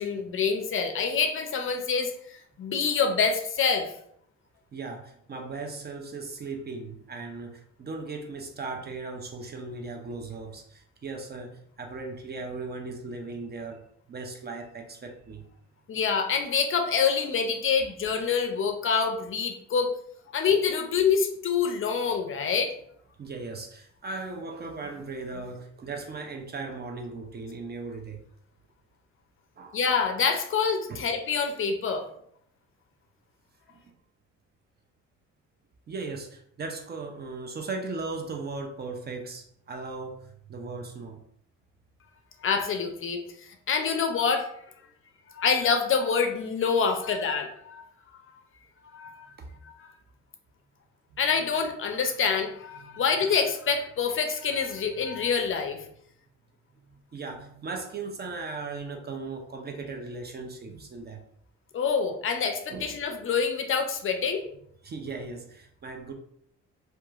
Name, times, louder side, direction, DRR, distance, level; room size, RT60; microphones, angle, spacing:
voice 1, 0.0-3.9 15.9-19.9 20.3-22.7 29.7-32.1 42.4-43.2 43.7-44.5 45.3-47.8 48.9-49.3 49.6-49.9 51.2-55.8 61.7-64.4, left 6 dB, 45° left, 4 dB, 0.4 m, -26 dB
voice 2, 4.7-15.4 23.2-28.2 29.6-29.8 30.9-31.0 33.7-33.8 35.9-41.2 49.4-49.5 52.9-53.0 56.9-61.2 62.7-62.9 64.8-66.1, right 3 dB, 35° right, 3 dB, 0.4 m, -37 dB
2.8 x 2.3 x 2.3 m, 0.69 s
cardioid pair, 90°, 30 cm